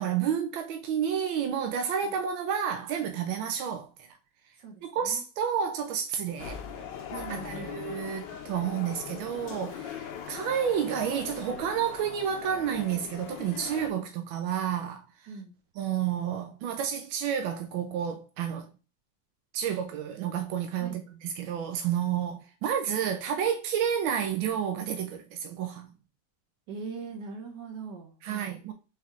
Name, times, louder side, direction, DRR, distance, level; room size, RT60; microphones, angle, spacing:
voice 1, 0.0-3.9 4.8-6.6 7.1-15.1 15.8-18.7 19.5-25.9 28.2-28.7, right 8 dB, 85° right, 1.4 m, -30 dB
voice 2, 4.6-5.2 7.2-7.8 14.0-14.1 15.3-15.5 20.8-21.0 26.7-28.6, right 4 dB, 65° right, 1.5 m, -41 dB
sound 1, 6.4-13.9, left 8 dB, 70° left, 1.3 m, -40 dB
4.3 x 3.5 x 3.6 m
omnidirectional pair, 2.1 m